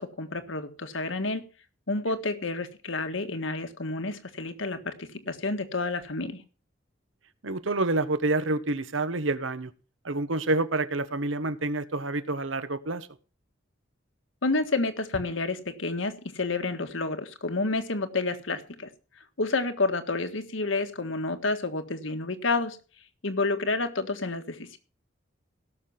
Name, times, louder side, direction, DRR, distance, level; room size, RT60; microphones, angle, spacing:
voice 1, 0.0-1.4 1.9-6.4 14.4-18.9 19.4-22.8 23.2-24.8, left 3 dB, 80° left, 1.7 m, -29 dB
voice 2, 7.4-9.7 10.0-13.1, right 2 dB, 80° right, 1.1 m, -28 dB
17.0 x 6.8 x 5.8 m
head